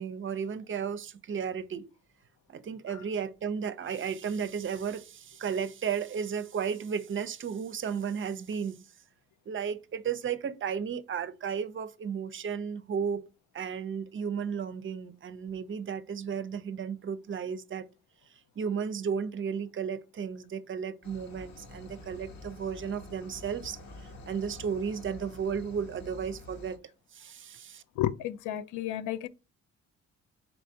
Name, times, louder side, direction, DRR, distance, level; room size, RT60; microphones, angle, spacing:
voice 1, 0.0-1.8 2.5-8.8 9.5-13.2 13.5-17.9 18.6-23.8 24.3-26.8 27.1-27.8, right 7 dB, 40° right, 0.5 m, -34 dB
sound 1, 21.0-26.8, left 2 dB, 65° left, 1.2 m, -47 dB
voice 2, 28.0-29.3, left 12 dB, 80° left, 0.4 m, -32 dB
4.2 x 3.3 x 2.7 m
cardioid pair, 90°, 30 cm